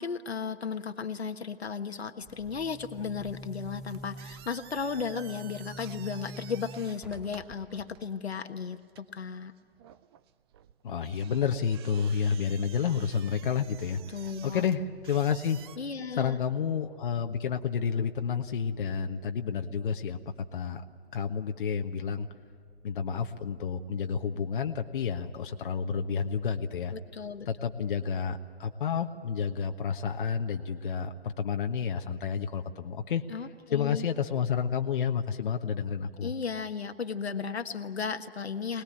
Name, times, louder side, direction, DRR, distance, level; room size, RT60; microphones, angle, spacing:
voice 1, 0.0-9.5 14.1-14.7 15.8-16.4 26.9-27.5 33.3-34.1 36.2-38.8, left 6 dB, 80° left, 7 dB, 1.5 m, -35 dB
Boom, 2.2-8.0, equal, ahead, 2.1 m, -46 dB
sound 1, 3.9-15.8, right 11 dB, 25° right, 0.5 m, -52 dB
voice 2, 10.8-14.2 14.4-15.6 16.2-20.2 20.5-20.8 21.1-22.3 22.8-26.9 27.5-33.2 33.7-36.3, left 7 dB, 55° left, 5 dB, 1.3 m, -30 dB
sound 2, 11.8-28.1, right 1 dB, 80° right, 3.4 m, -55 dB
24.5 x 20.0 x 8.7 m, 2.1 s
figure-of-eight pair, 135°, 31 cm